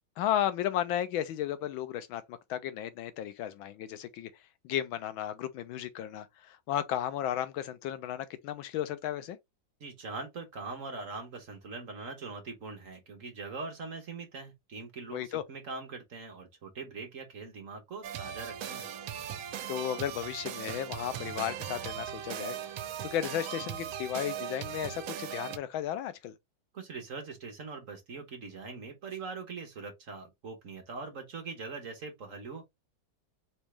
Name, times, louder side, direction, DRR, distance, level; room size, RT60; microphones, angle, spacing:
voice 1, 0.2-4.3 4.6-9.4 15.1-15.4 19.7-22.6 23.0-26.3, left 11 dB, 85° left, 1.5 m, -34 dB
voice 2, 9.8-18.9 26.7-32.6, right 4 dB, 50° right, 1.3 m, -42 dB
sound 1, 18.0-25.6, right 9 dB, 90° right, 1.4 m, -39 dB
4.2 x 3.5 x 3.2 m
omnidirectional pair, 2.1 m